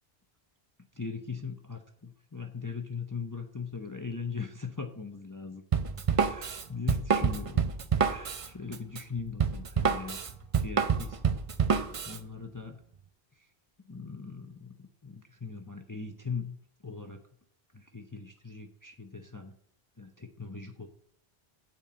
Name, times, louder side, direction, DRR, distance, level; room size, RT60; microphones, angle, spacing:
voice 1, 0.9-5.6 6.2-7.7 8.0-10.2 10.6-11.4 12.0-12.8 13.4-13.5 13.9-16.6 16.8-17.2 17.7-19.5 20.0-20.9, left 5 dB, 20° left, 5 dB, 0.6 m, -40 dB
Drum kit, 5.7-12.2, right 6 dB, 40° right, 0.5 m, -28 dB
8.8 x 4.5 x 7.4 m, 0.62 s
omnidirectional pair, 1.1 m